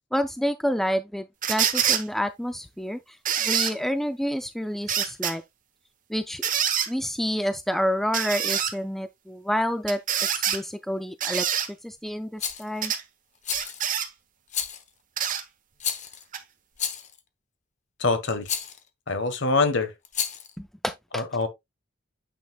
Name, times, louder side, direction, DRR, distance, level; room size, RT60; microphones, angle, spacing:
voice 1, 0.1-3.2 3.4-5.4 6.1-6.4 6.9-10.0 10.3-11.4 11.8-12.9 20.6-21.2, equal, ahead, 0.3 m, -28 dB
sound 1, 1.4-2.0 3.3-3.7 4.9-5.3 6.4-6.9 8.1-8.7 9.9-10.6 11.2-11.7 12.8-13.0 13.5-14.1 15.2-15.4 16.3-16.4, right 9 dB, 40° right, 0.9 m, -25 dB
Rattle, 12.4-12.7 13.4-13.9 14.5-14.9 15.8-16.2 16.8-17.2 18.4-18.8 20.0-20.5, left 8 dB, 35° left, 0.9 m, -31 dB
voice 2, 18.0-18.5 19.1-19.9 21.1-21.5, left 3 dB, 55° left, 1.3 m, -24 dB
8.6 x 5.7 x 2.3 m
head